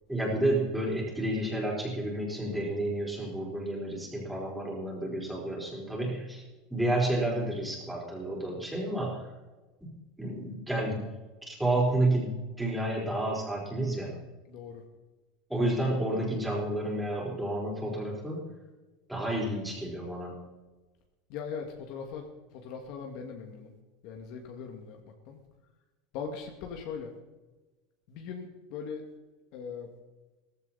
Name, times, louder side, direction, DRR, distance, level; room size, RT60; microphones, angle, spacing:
voice 1, 0.1-6.4 6.7-9.3 9.8-9.9 10.2-11.1 11.4-14.2 15.5-18.4 19.1-20.3, right 1 dB, 5° right, -3 dB, 4.3 m, -30 dB
voice 2, 14.5-14.8 21.3-22.3 22.5-23.7 24.0-25.0 25.3-25.4 26.1-27.1 28.1-29.0 29.5-29.9, left 6 dB, 50° left, 3 dB, 2.2 m, -40 dB
17.0 x 15.0 x 4.2 m, 1.2 s
supercardioid pair, 160°, 0 cm